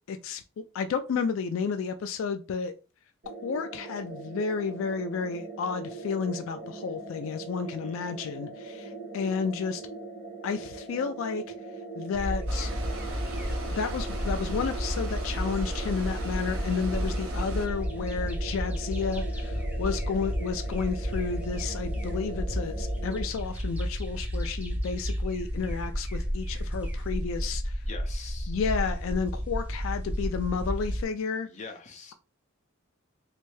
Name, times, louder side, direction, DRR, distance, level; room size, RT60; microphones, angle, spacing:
voice 1, 0.1-2.7 3.4-9.8 10.4-11.4 12.0-12.7 13.7-27.8 28.5-31.5, left 5 dB, 75° left, 0.3 m, -32 dB
sound 1, 3.2-23.2, right 3 dB, 40° right, 1.4 m, -41 dB
sound 2, 12.1-31.0, equal, 5° right, 0.5 m, -32 dB
sound 3, 12.5-17.7, right 2 dB, 80° right, 0.7 m, -40 dB
voice 2, 27.8-28.6 31.4-32.1, left 4 dB, 35° left, 0.7 m, -43 dB
3.2 x 2.6 x 3.1 m
head